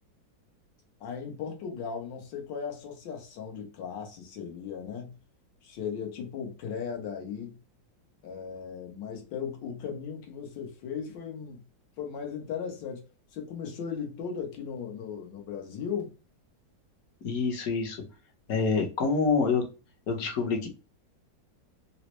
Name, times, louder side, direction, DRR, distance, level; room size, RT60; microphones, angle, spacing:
voice 1, 1.0-5.2 5.6-7.6 8.2-11.6 12.0-13.1 13.3-16.1, left 7 dB, 75° left, 1.6 m, -37 dB
voice 2, 17.2-18.0 18.5-19.7 20.1-20.7, left 5 dB, 60° left, 1.2 m, -26 dB
4.0 x 2.1 x 3.0 m
omnidirectional pair, 2.0 m